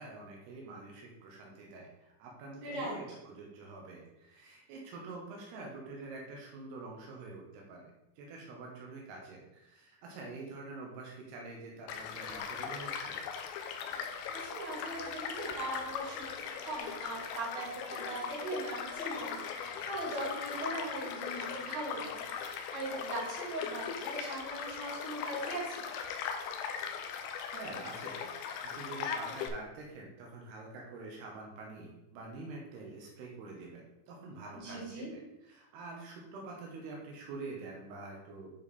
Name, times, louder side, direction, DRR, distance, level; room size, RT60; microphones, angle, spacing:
voice 1, 0.0-13.2 27.5-28.3 28.6-38.5, right 3 dB, 85° right, -1 dB, 3.1 m, -46 dB
voice 2, 2.6-3.0 13.9-25.8 34.5-35.1, right 2 dB, 45° right, -5 dB, 3.3 m, -40 dB
Child speech kid speaking / Stream / Car passing by, 11.9-29.5, left 7 dB, 85° left, 2.5 m, -39 dB
10.0 x 4.2 x 3.5 m, 0.91 s
omnidirectional pair, 4.6 m